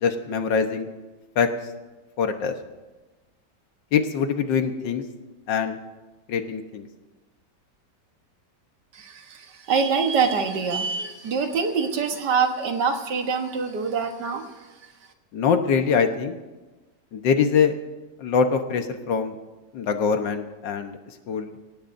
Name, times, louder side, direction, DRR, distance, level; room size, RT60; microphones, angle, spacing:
voice 1, 0.0-0.9 1.4-1.5 2.2-2.5 3.9-5.0 5.5-5.8 6.3-6.9 15.3-16.4 17.1-17.7 18.2-19.4 19.7-21.0 21.3-21.5, left 6 dB, 85° left, 6 dB, 1.8 m, -23 dB
voice 2, 8.9-14.7, right 5 dB, 70° right, 5 dB, 1.9 m, -25 dB
25.0 x 17.0 x 2.7 m, 1.2 s
omnidirectional pair, 1.9 m